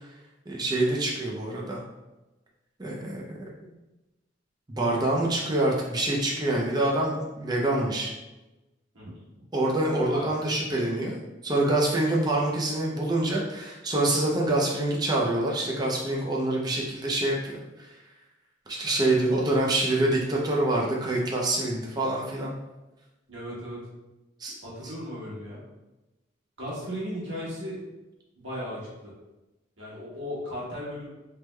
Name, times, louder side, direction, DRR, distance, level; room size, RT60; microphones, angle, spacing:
voice 1, 0.5-1.8 2.8-3.2 3.6-3.7 4.7-8.1 9.5-11.2 11.4-17.6 18.7-22.5 24.4-24.5, right 1 dB, 20° right, -3 dB, 0.5 m, -26 dB
voice 2, 23.3-23.9 24.6-25.6 26.6-27.8 28.4-29.1 29.8-31.1, equal, 85° right, -7 dB, 1.3 m, -36 dB
3.4 x 2.1 x 3.1 m, 1.0 s
head